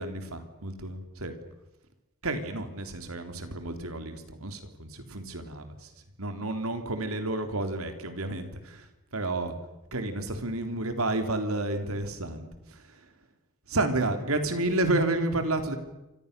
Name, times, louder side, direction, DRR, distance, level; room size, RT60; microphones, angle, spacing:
voice 1, 0.0-1.3 2.2-5.9 6.2-8.9 9.1-9.5 9.9-13.1 13.7-15.8, right 2 dB, 85° right, 7 dB, 3.6 m, -31 dB
29.0 x 25.0 x 6.9 m, 1.0 s
head